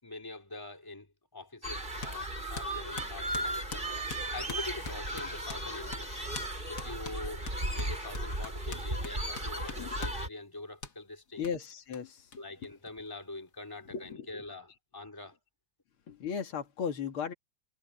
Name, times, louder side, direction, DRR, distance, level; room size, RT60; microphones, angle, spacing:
voice 1, 0.0-6.1 6.7-7.4 7.7-11.4 12.4-14.7 14.9-15.4, left 2 dB, 10° left, 3.5 m, -44 dB
sound 1, 1.6-10.3, right 1 dB, 25° right, 7.0 m, -36 dB
sound 2, 2.0-2.2 2.6-5.7 5.9-6.1 6.3-6.5 6.8-10.2 10.8-11.0 11.4-11.5 11.9-12.0 12.3-12.4 12.6-13.4, left 5 dB, 50° left, 2.2 m, -43 dB
voice 2, 9.7-10.0 11.4-12.3 13.8-14.3 16.1-17.3, left 7 dB, 80° left, 2.9 m, -36 dB
omnidirectional pair, 2.3 m